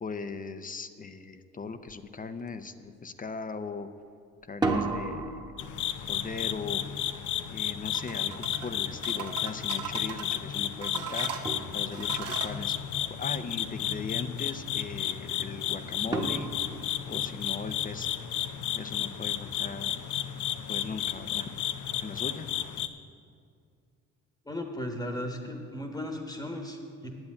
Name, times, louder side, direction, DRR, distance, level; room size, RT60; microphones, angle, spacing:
voice 1, 0.0-3.9 4.5-5.4 6.1-6.8 7.5-11.3 11.7-12.8 13.2-16.5 17.1-18.2 18.7-20.0 20.7-21.5 22.0-22.5, left 4 dB, 30° left, 10 dB, 0.6 m, -39 dB
sound 1, 1.9-2.0 2.4-2.9 4.4-9.3 10.9-11.0 11.5-12.4 16.1-17.8, right 3 dB, 15° right, 1.2 m, -36 dB
sound 2, 5.6-22.9, left 10 dB, 80° left, 0.6 m, -33 dB
sound 3, 7.9-8.7 9.0-10.4 10.8-12.5, right 7 dB, 55° right, 1.4 m, -38 dB
voice 2, 24.4-27.1, left 1 dB, 15° left, 3 dB, 1.2 m, -36 dB
8.9 x 8.4 x 8.4 m, 2.3 s
cardioid pair, 90°, 30 cm